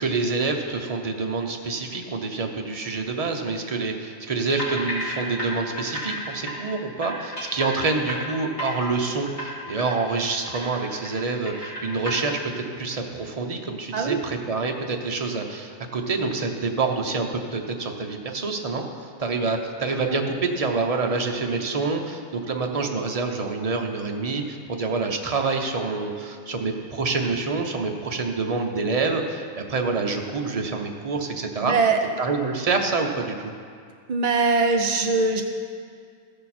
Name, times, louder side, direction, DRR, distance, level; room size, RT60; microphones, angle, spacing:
voice 1, 0.0-31.7 32.2-33.5, right 3 dB, 35° right, 3 dB, 0.7 m, -27 dB
sound 1, 4.5-6.2 6.5-6.6 7.0-8.9 9.3-9.5 9.8-9.9 10.2-11.2 11.5-12.1, equal, 40° left, 2.8 m, -32 dB
voice 2, 31.6-32.0 34.1-35.4, right 4 dB, 75° right, 4 dB, 0.3 m, -21 dB
14.5 x 6.6 x 4.3 m, 2.2 s
omnidirectional pair, 1.5 m